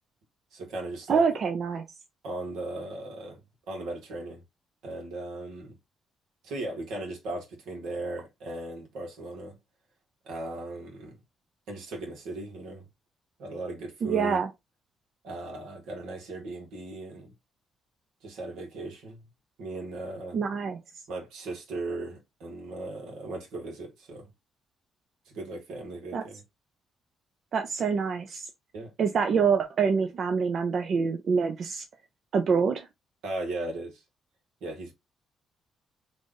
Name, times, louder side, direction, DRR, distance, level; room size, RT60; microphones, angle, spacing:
voice 1, 0.5-1.2 2.2-3.4 3.7-4.4 4.8-5.7 6.4-9.6 10.2-11.2 11.7-12.9 13.4-14.4 15.2-17.3 18.2-19.2 19.6-20.4 21.1-24.3 25.2-26.4 28.7-28.9 33.2-34.0 34.6-34.9, right 2 dB, 85° right, 1.5 m, -37 dB
voice 2, 1.1-1.8 14.0-14.5 20.3-20.8 26.1-26.2 27.5-28.5 29.0-31.9 32.3-32.9, right 5 dB, 55° right, 0.6 m, -26 dB
3.2 x 2.6 x 3.7 m
cardioid pair, 90°, 0 cm